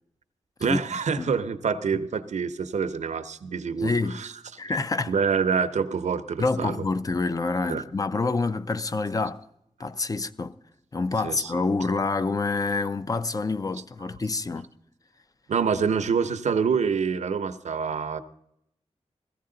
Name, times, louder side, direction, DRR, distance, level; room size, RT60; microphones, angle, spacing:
voice 1, 0.6-4.3 5.1-6.9 7.7-7.8 11.2-11.5 15.5-18.2, right 6 dB, 85° right, 0.7 m, -26 dB
voice 2, 3.8-4.2 4.6-5.1 6.4-9.5 9.8-10.5 10.9-14.7, left 3 dB, 30° left, 0.4 m, -27 dB
15.5 x 15.0 x 3.8 m
wide cardioid pair, 125°, 12 cm